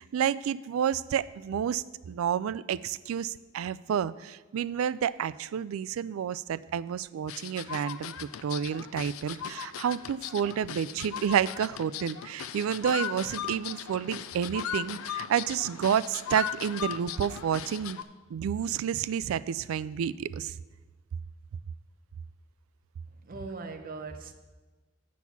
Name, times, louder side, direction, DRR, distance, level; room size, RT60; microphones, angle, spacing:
voice 1, 0.0-18.0 18.3-20.5, right 8 dB, 80° right, 0.3 m, -30 dB
sound 1, 7.3-18.0, left 9 dB, 90° left, 0.4 m, -38 dB
voice 2, 23.1-24.3, right 3 dB, 45° right, 0.7 m, -40 dB
8.5 x 6.3 x 5.7 m
head